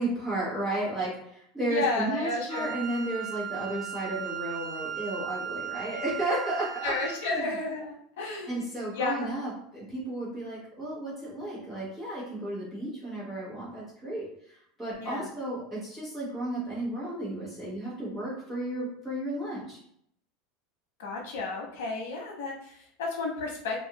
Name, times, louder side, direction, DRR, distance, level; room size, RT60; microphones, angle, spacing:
voice 1, 0.0-6.9 7.2-7.5 8.5-19.8, right 1 dB, 10° right, -9 dB, 1.0 m, -33 dB
voice 2, 1.7-2.7 6.8-8.6 8.9-9.3 15.0-15.3 21.0-23.8, left 3 dB, 85° left, 0 dB, 0.9 m, -32 dB
Wind instrument woodwind instrument, 2.5-7.3, right 9 dB, 25° right, 0.4 m, -37 dB
2.4 x 2.3 x 2.9 m, 0.69 s
supercardioid pair, 180°, 0 cm